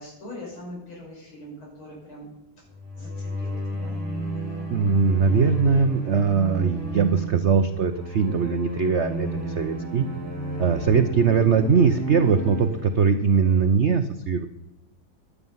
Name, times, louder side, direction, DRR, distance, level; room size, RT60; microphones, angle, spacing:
voice 1, 0.0-2.3 3.0-4.0, left 1 dB, 85° left, -2 dB, 7.0 m, -41 dB
sound 1, 2.7-13.6, equal, 5° right, 6.7 m, -32 dB
voice 2, 4.7-10.1 10.6-14.5, right 6 dB, 85° right, 9 dB, 0.6 m, -21 dB
15.0 x 11.5 x 5.6 m, 0.91 s
omnidirectional pair, 2.2 m